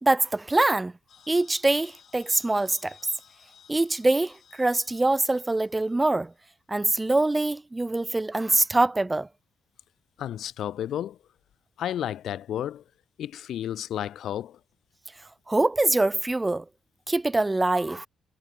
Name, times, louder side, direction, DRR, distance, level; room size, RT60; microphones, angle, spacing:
voice 1, 0.0-0.9 1.3-3.0 3.7-6.3 6.7-9.3 15.5-16.6 17.1-18.1, right 2 dB, 15° right, 0.5 m, -24 dB
sound 1, 1.1-6.3, left 8 dB, 55° left, 3.1 m, -56 dB
voice 2, 10.2-11.2 11.8-12.8 13.2-14.6, left 11 dB, 70° left, 0.4 m, -32 dB
cardioid pair, 90°, 0 cm